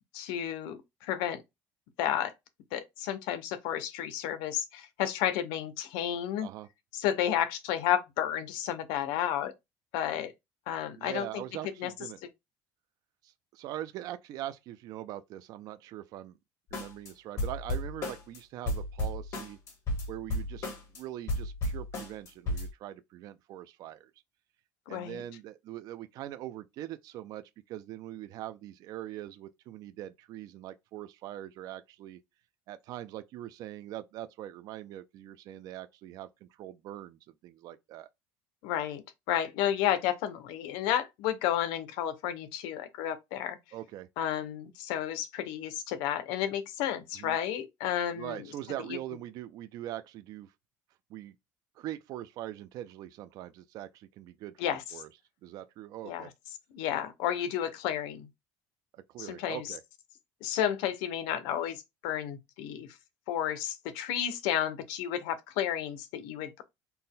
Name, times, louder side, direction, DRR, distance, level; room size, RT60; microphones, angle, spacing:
voice 1, 0.1-1.4 2.0-2.3 2.7-6.5 6.9-9.5 9.9-10.3 10.7-11.3 11.8-11.9 24.9-25.2 38.6-43.6 44.2-48.4 54.6-54.8 56.0-56.3 56.7-58.3 59.2-59.6 60.4-62.9 63.3-66.6, left 10 dB, 85° left, 0.7 m, -32 dB
voice 2, 10.9-12.2 13.2-16.4 16.7-19.6 20.1-20.7 20.9-24.1 24.9-32.2 32.7-38.1 43.7-44.1 47.1-47.4 48.1-50.5 51.1-51.4 51.8-55.1 55.4-56.3 59.1-59.8, right 13 dB, 55° right, 0.3 m, -42 dB
sound 1, 16.7-17.1 17.4-18.4 18.7-21.0 21.3-22.7, left 1 dB, 40° left, 1.9 m, -33 dB
4.1 x 2.1 x 3.6 m
cardioid pair, 145°, 8 cm